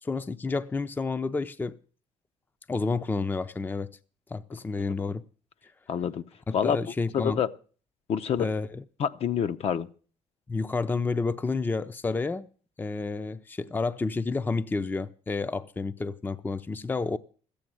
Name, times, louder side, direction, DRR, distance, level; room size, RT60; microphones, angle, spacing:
voice 1, 0.0-1.8 2.7-3.9 4.3-5.2 6.5-7.4 8.4-8.8 10.5-12.5 12.8-17.2, left 3 dB, 15° left, 0.5 m, -30 dB
voice 2, 5.9-6.2 6.5-6.8 7.1-7.5 8.1-8.5 9.0-9.9, left 8 dB, 55° left, 0.7 m, -27 dB
14.0 x 8.6 x 7.6 m
cardioid pair, 110°, 12 cm